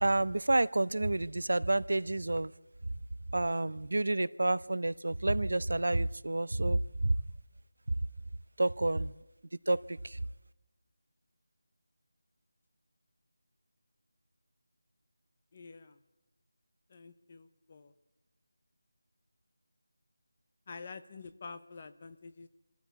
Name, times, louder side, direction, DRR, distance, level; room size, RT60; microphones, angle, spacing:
voice 1, 0.0-2.5 3.3-7.1 8.6-9.1 9.7-10.2, right 2 dB, 75° right, 18 dB, 0.7 m, -29 dB
voice 2, 15.5-16.0 16.9-17.9 20.7-22.5, left 4 dB, 25° left, 11 dB, 0.8 m, -48 dB
26.0 x 13.5 x 8.2 m, 1.0 s
figure-of-eight pair, 175°, 0 cm